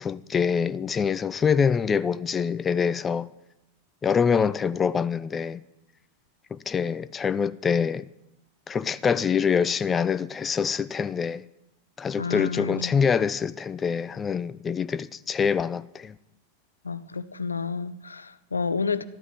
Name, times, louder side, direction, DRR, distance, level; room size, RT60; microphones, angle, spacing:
voice 1, 0.0-3.3 4.0-5.6 6.5-8.1 8.7-11.4 12.0-16.1, left 6 dB, 20° left, 0.5 m, -25 dB
voice 2, 12.2-12.9 16.8-19.0, left 5 dB, 75° left, 0.7 m, -30 dB
13.0 x 12.0 x 6.2 m
figure-of-eight pair, 90°, 0 cm